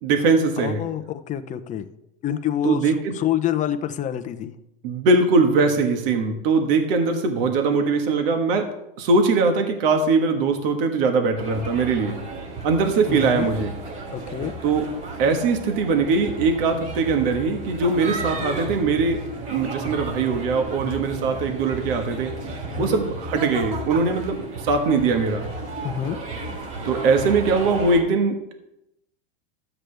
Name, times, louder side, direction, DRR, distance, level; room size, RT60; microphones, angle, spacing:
voice 1, 0.0-0.8 2.6-3.1 4.8-8.7 9.0-12.2 12.6-13.7 14.6-14.8 15.2-19.2 19.5-22.3 22.8-25.4 26.8-28.5, right 4 dB, 65° right, 5 dB, 1.6 m, -21 dB
voice 2, 0.6-1.9 2.2-4.5 13.1-13.5 14.1-14.5 22.7-23.0 25.8-26.2, left 10 dB, 25° left, 9 dB, 0.7 m, -27 dB
sound 1, 11.4-28.0, right 2 dB, 45° right, 3.6 m, -33 dB
13.0 x 7.8 x 3.4 m, 0.85 s
supercardioid pair, 130°, 30 cm